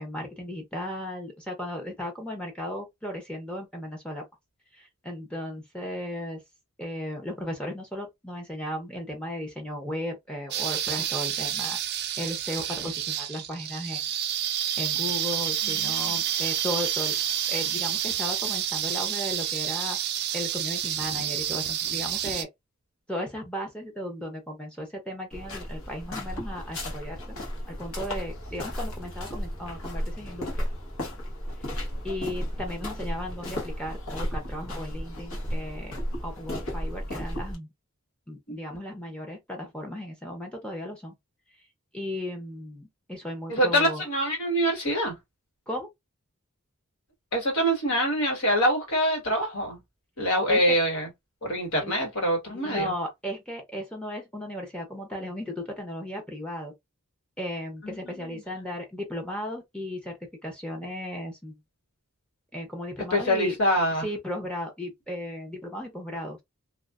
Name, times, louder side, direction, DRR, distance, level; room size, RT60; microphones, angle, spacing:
voice 1, 0.0-4.2 4.7-6.4 6.8-14.0 14.8-17.2 17.5-20.0 20.3-22.5 23.1-27.4 27.7-30.7 31.6-31.8 32.0-37.7 38.3-41.1 41.9-44.0 45.7-45.9 50.5-50.8 51.8-51.9 52.5-56.7 57.4-60.2 60.4-61.6 62.5-63.6 64.0-66.4, left 1 dB, 5° left, 0.6 m, -35 dB
sound 1, 10.5-22.4, right 10 dB, 50° right, 0.4 m, -29 dB
voice 2, 15.6-16.2 38.5-38.6 43.5-45.2 47.3-49.8 50.2-51.1 51.4-52.9 57.8-58.4 63.1-64.1, equal, 85° left, 1.6 m, -25 dB
sound 2, 25.3-37.6, equal, 70° left, 1.1 m, -34 dB
2.4 x 2.4 x 2.3 m
head